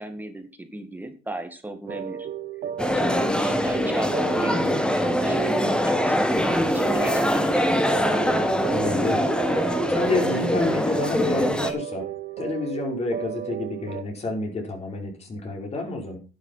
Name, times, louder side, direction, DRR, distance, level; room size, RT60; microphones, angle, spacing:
voice 1, 0.0-2.3 3.0-7.8, right 2 dB, 10° right, 6 dB, 2.1 m, -35 dB
sound 1, 1.9-14.0, right 11 dB, 55° right, 1.1 m, -34 dB
sound 2, 2.8-11.7, left 1 dB, 5° left, 1.5 m, -23 dB
voice 2, 8.7-9.2 9.5-12.0 12.4-16.2, left 3 dB, 40° left, 1 dB, 5.3 m, -29 dB
11.5 x 7.8 x 5.8 m, 0.36 s
cardioid pair, 110°, 17 cm